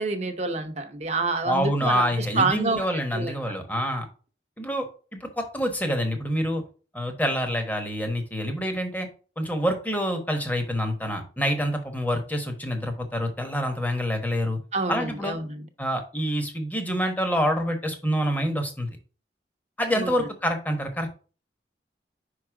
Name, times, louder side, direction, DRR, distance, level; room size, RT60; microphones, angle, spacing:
voice 1, 0.0-2.9 3.1-3.3 14.7-15.6 19.9-20.1, right 3 dB, 40° right, 0.8 m, -27 dB
voice 2, 1.5-4.0 4.6-4.9 5.1-6.6 6.9-9.1 9.4-14.6 14.9-15.4 15.8-18.9 19.8-21.1, equal, 10° left, 1.1 m, -27 dB
5.4 x 4.9 x 3.7 m
head